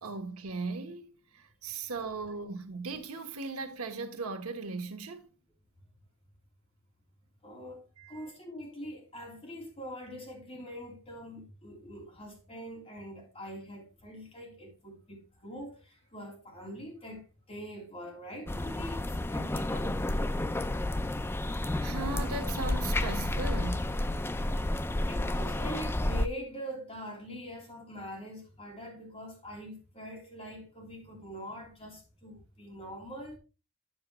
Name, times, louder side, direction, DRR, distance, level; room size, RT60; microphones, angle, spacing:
voice 1, 0.0-5.3 8.0-8.2 21.4-23.9, right 3 dB, 85° right, 1.2 m, -38 dB
voice 2, 7.4-20.0 25.1-33.4, equal, 30° left, 3.2 m, -44 dB
sound 1, 18.5-26.3, left 1 dB, 10° left, 0.4 m, -31 dB
9.6 x 6.8 x 3.0 m
head